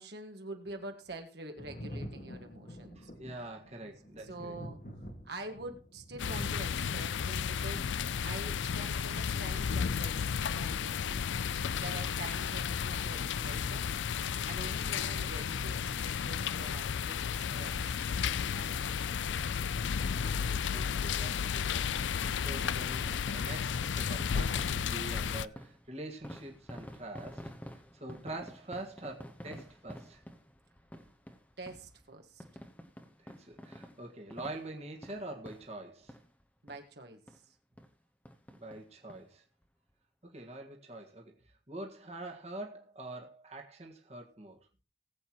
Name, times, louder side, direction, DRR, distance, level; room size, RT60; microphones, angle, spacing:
voice 1, 0.0-3.1 3.8-4.8 5.2-7.9 8.2-11.3 11.8-13.9 14.4-18.0 18.5-19.4 28.1-28.2 31.6-32.4 36.6-37.5, right 2 dB, 65° right, 1.7 m, -46 dB
Thunder, 1.6-8.9 10.0-10.1, equal, 45° left, 1.7 m, -46 dB
voice 2, 2.9-4.5 20.2-21.7 22.1-30.2 33.2-36.1 38.5-39.4 40.2-44.6, right 2 dB, 35° right, 1.7 m, -45 dB
sound 1, 6.2-25.5, left 7 dB, 85° left, 0.5 m, -33 dB
sound 2, 23.1-36.4 36.7-36.8 37.3-37.4 37.8-37.9 38.2-39.2 39.6-39.7 39.9-40.0, equal, 10° left, 1.0 m, -50 dB
20.0 x 8.1 x 3.0 m
head